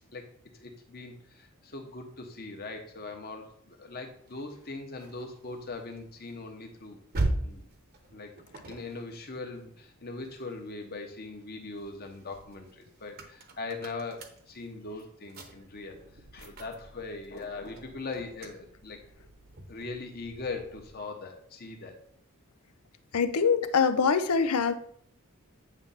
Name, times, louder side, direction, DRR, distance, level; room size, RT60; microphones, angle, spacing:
voice 1, 0.6-7.0 7.4-7.6 8.1-8.4 8.6-16.0 16.3-19.3 19.6-22.0, left 3 dB, 45° left, 3 dB, 1.1 m, -40 dB
sound 1, 4.3-10.8 11.2-21.0, right 2 dB, 45° right, 0.9 m, -41 dB
voice 2, 23.1-24.7, left 5 dB, 85° left, 10 dB, 0.6 m, -24 dB
8.8 x 3.3 x 5.6 m, 0.64 s
head